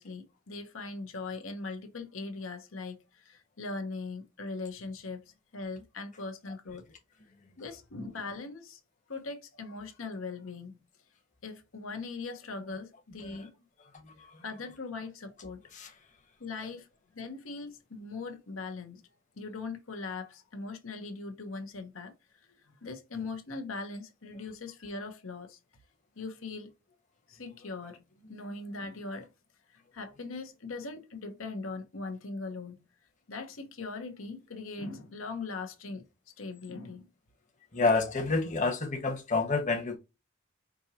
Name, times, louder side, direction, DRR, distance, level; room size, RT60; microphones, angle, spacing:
voice 1, 0.0-6.9 7.6-8.8 9.1-10.8 11.4-13.5 14.4-15.6 16.4-16.9 17.1-19.0 19.4-22.1 22.4-25.6 26.2-26.7 27.3-29.3 29.7-32.8 33.3-36.0 36.4-37.1, left 3 dB, 85° left, 1.0 m, -40 dB
voice 2, 37.7-40.0, left 3 dB, 40° left, 1.1 m, -29 dB
5.2 x 2.9 x 2.9 m
head